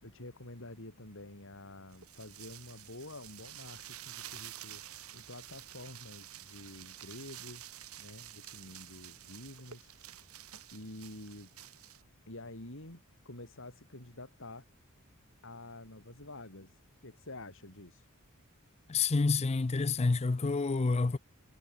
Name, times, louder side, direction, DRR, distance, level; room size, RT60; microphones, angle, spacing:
voice 1, 0.0-7.6 8.0-9.9 10.7-11.6 12.3-14.7 15.4-18.1, left 2 dB, 65° left, 6.3 m, -48 dB
sound 1, 1.9-12.0, right 12 dB, 85° right, 2.4 m, -50 dB
voice 2, 18.9-21.2, left 4 dB, 30° left, 0.5 m, -28 dB
head